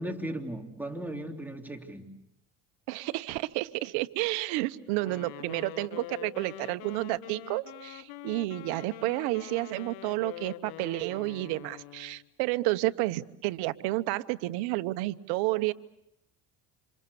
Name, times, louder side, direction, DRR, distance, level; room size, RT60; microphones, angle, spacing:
voice 1, 0.0-2.1, right 1 dB, 5° right, 2 dB, 3.2 m, -36 dB
voice 2, 2.9-15.7, right 19 dB, 85° right, 12 dB, 1.1 m, -31 dB
Wind instrument woodwind instrument, 5.0-12.2, left 16 dB, 75° left, 1.2 m, -45 dB
27.5 x 27.0 x 7.0 m, 0.78 s
supercardioid pair, 95°, 37 cm